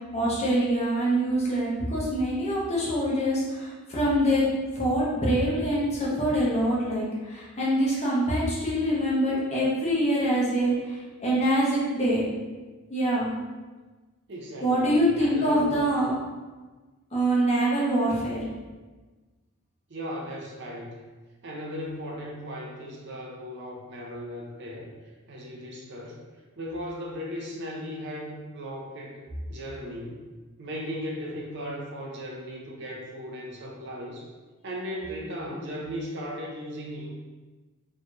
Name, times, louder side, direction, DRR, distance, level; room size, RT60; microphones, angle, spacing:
voice 1, 0.0-4.4 4.7-12.2 12.9-13.3 14.6-16.1 17.1-18.4, right 1 dB, 30° left, -6 dB, 1.0 m, -25 dB
voice 2, 14.3-15.7 19.9-21.0 21.4-24.9 25.3-26.2 26.6-29.2 29.5-30.2 30.6-34.3 34.6-37.1, equal, 55° right, -2 dB, 0.7 m, -37 dB
4.7 x 3.0 x 2.5 m, 1.3 s
head